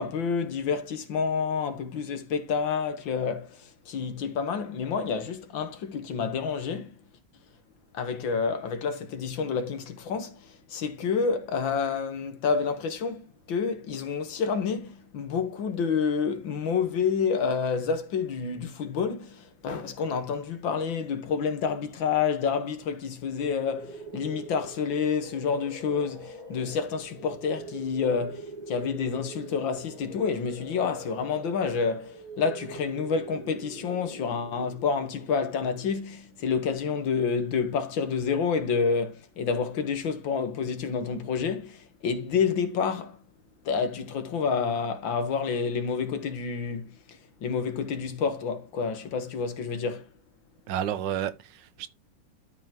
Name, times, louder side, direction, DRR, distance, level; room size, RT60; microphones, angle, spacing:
voice 1, 0.0-7.0 7.9-43.2 43.7-46.9 47.4-50.0, left 5 dB, 80° left, 2.0 m, -29 dB
sound 1, 23.4-36.2, right 1 dB, 25° right, 1.9 m, -43 dB
voice 2, 50.7-51.9, right 10 dB, 70° right, 1.3 m, -31 dB
12.5 x 5.6 x 2.9 m
omnidirectional pair, 2.1 m